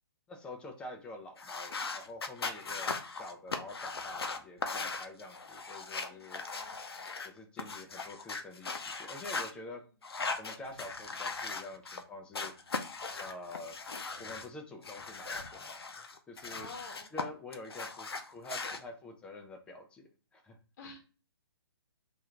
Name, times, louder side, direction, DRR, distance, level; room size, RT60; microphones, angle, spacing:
voice 1, 0.3-6.4 7.2-9.8 10.4-12.5 13.2-13.8 14.2-15.8 16.3-16.7 17.1-20.6, left 2 dB, 5° left, 3 dB, 0.5 m, -47 dB
sound 1, 1.4-7.3 7.6-9.5 10.0-12.0 12.3-14.5 14.8-17.2 17.5-18.8, left 4 dB, 70° left, 0.5 m, -39 dB
voice 2, 2.5-2.8 6.0-6.8 16.5-17.1 20.8-21.0, left 3 dB, 45° left, 2 dB, 1.0 m, -50 dB
2.7 x 2.5 x 3.2 m, 0.36 s
figure-of-eight pair, 130°, 13 cm